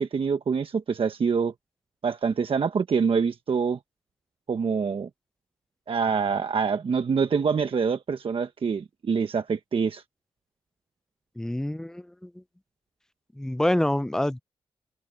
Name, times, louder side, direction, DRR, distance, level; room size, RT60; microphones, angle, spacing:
voice 1, 0.0-1.5 2.0-3.8 4.5-5.1 5.9-10.0, right 5 dB, 55° right, 1.2 m, -25 dB
voice 2, 11.4-12.3 13.4-14.4, left 1 dB, 5° left, 0.4 m, -26 dB
cardioid pair, 70°, 11 cm